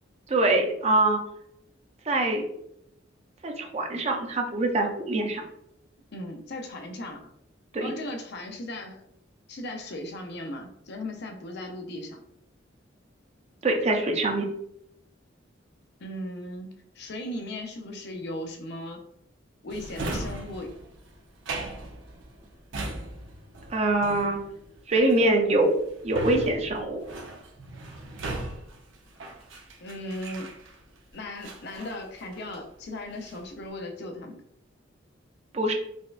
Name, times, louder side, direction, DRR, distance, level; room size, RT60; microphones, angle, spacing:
voice 1, 0.3-1.2 2.1-2.5 3.4-5.4 7.7-7.9 13.6-14.5 23.7-24.4 24.9-25.7 26.0-27.0 35.5-35.7, right 2 dB, 35° right, 3 dB, 0.4 m, -24 dB
voice 2, 6.1-7.2 7.8-9.0 9.5-12.2 16.0-19.0 19.6-20.7 29.8-30.6 31.1-34.4, left 1 dB, 60° left, 4 dB, 0.5 m, -37 dB
Drawer open or close, 19.7-31.0 31.4-32.7 33.0-33.5, right 2 dB, 90° right, 0.6 m, -38 dB
4.1 x 2.3 x 2.4 m, 0.74 s
head